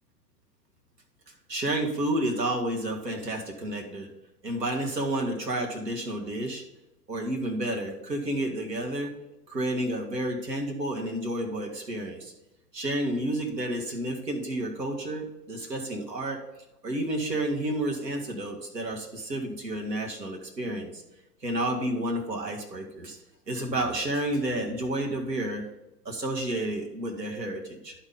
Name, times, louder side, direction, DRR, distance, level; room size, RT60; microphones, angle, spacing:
voice 1, 1.5-4.1 4.4-6.6 7.1-9.1 9.5-12.3 12.7-16.4 16.8-21.0 21.4-23.2 23.5-25.6 26.1-28.0, right 1 dB, 85° right, 0 dB, 2.0 m, -30 dB
11.5 x 4.4 x 3.8 m, 0.95 s
figure-of-eight pair, 110°, 49 cm